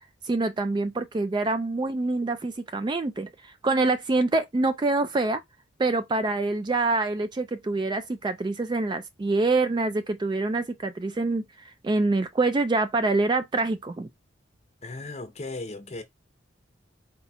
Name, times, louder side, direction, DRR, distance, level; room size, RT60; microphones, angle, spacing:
voice 1, 0.3-5.4 5.8-14.1, right 3 dB, 25° right, 0.3 m, -26 dB
voice 2, 14.8-16.0, left 2 dB, 35° left, 0.7 m, -36 dB
3.9 x 2.3 x 4.1 m
head